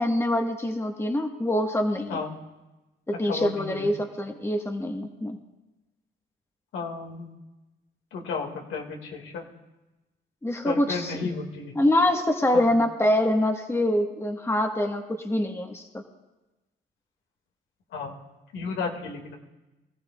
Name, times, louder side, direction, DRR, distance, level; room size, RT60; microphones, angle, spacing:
voice 1, 0.0-2.2 3.1-5.4 10.4-11.3 11.7-15.8, left 1 dB, 15° left, 3 dB, 1.5 m, -25 dB
voice 2, 3.1-3.9 6.7-7.3 8.1-9.5 10.6-11.8 12.5-12.7 17.9-18.2 18.5-19.3, left 4 dB, 80° left, 1 dB, 2.3 m, -33 dB
25.0 x 14.5 x 2.4 m, 1.1 s
cardioid pair, 90°, 20 cm